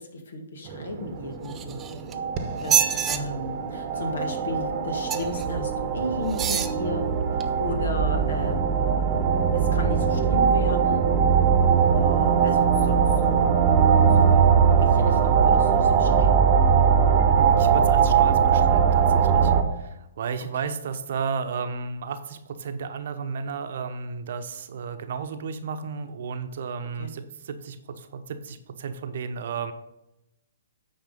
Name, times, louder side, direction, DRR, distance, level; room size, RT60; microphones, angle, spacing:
voice 1, 0.0-1.8 2.6-7.0 7.3-8.6 9.5-11.1 11.8-13.5 14.1-14.4 14.7-16.4 20.6-20.8 27.0-27.1, left 2 dB, 70° left, 4 dB, 1.8 m, -34 dB
sound 1, 0.7-19.6, right 7 dB, 35° right, 1.0 m, -21 dB
sound 2, 1.5-2.2 2.6-3.2 5.1-5.4 6.3-6.8 7.4-7.5, right 9 dB, 20° right, 0.6 m, -25 dB
voice 2, 17.4-29.7, right 5 dB, 55° right, 8 dB, 0.9 m, -33 dB
9.1 x 4.8 x 5.5 m, 0.88 s
hypercardioid pair, 130°, 0 cm